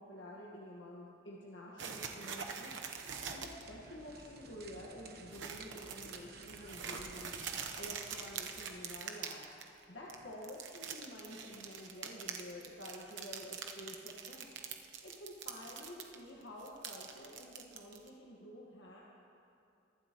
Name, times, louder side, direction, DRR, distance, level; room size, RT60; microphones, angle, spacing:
voice 1, 0.0-2.8 3.3-9.4 9.9-14.5 15.0-19.0, left 1 dB, 75° left, -5 dB, 1.5 m, -50 dB
sound 1, 1.8-3.6 4.0-4.1 4.4-4.8 5.3-9.8 10.1-16.1 16.4-18.1, right 6 dB, 80° right, 0.9 m, -44 dB
sound 2, 2.9-9.0, right 3 dB, 55° right, 1.1 m, -54 dB
23.5 x 11.5 x 3.0 m, 2.7 s
head